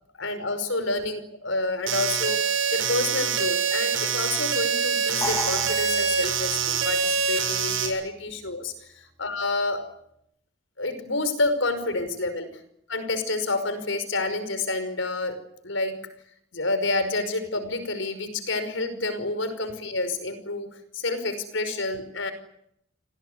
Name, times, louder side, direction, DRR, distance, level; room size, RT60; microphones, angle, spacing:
voice 1, 0.2-9.9 10.8-12.6 12.9-16.1 16.5-22.3, left 2 dB, 70° left, 12 dB, 5.4 m, -29 dB
sound 1, 1.9-7.9, right 7 dB, 80° right, 7.1 m, -25 dB
Crash cymbal, 5.2-7.1, left 2 dB, 15° left, 7.1 m, -33 dB
29.0 x 21.0 x 9.6 m, 0.75 s
head